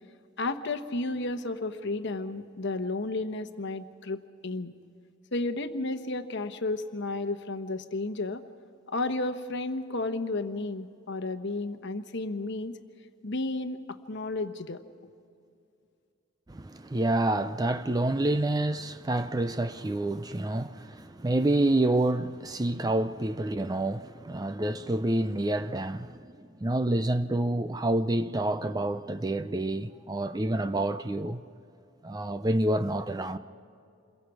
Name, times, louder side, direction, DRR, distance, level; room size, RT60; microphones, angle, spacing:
voice 1, 0.4-4.7 5.3-8.4 8.9-12.8 13.2-14.8, left 2 dB, 55° left, 1.0 m, -32 dB
voice 2, 16.5-31.4 32.0-33.4, right 1 dB, 15° right, 0.4 m, -28 dB
28.0 x 22.5 x 4.8 m
head